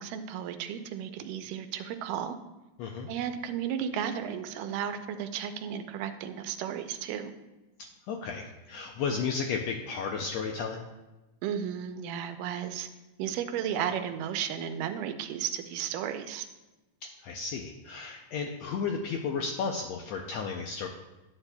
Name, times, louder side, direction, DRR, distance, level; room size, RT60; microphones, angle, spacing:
voice 1, 0.0-2.4 3.1-7.3 11.4-12.9 13.2-16.5, right 9 dB, 90° right, 8 dB, 2.2 m, -34 dB
voice 2, 8.1-10.8 17.2-20.9, left 5 dB, 80° left, 2 dB, 1.5 m, -33 dB
11.5 x 8.8 x 2.3 m, 1.1 s
omnidirectional pair, 3.7 m